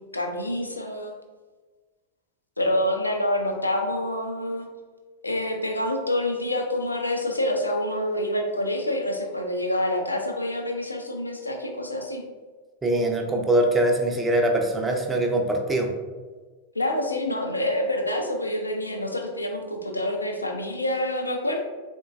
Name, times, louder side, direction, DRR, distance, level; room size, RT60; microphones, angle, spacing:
voice 1, 0.1-1.1 2.6-4.7 5.2-12.2 16.8-21.6, left 1 dB, 80° left, 3 dB, 0.4 m, -27 dB
voice 2, 12.8-15.9, right 1 dB, 10° right, 2 dB, 0.4 m, -23 dB
3.7 x 2.2 x 2.4 m, 1.3 s
figure-of-eight pair, 90°, 0 cm